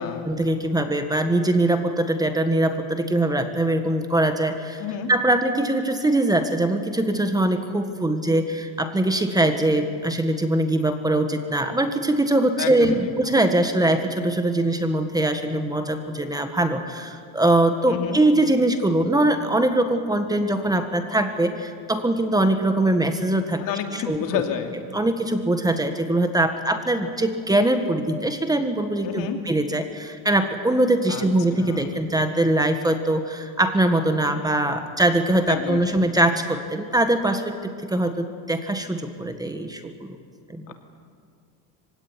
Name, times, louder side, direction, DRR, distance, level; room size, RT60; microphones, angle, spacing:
voice 1, 0.2-4.8 5.1-23.6 23.9-24.4 24.9-40.2 40.5-40.7, right 1 dB, 10° right, 8 dB, 1.6 m, -22 dB
voice 2, 4.8-5.1 12.6-13.1 17.9-18.2 23.6-24.7 29.0-29.4 31.1-31.3 31.6-31.9 35.5-35.8, left 9 dB, 60° left, 4 dB, 2.8 m, -29 dB
24.5 x 17.0 x 9.9 m, 2.2 s
cardioid pair, 120°, 37 cm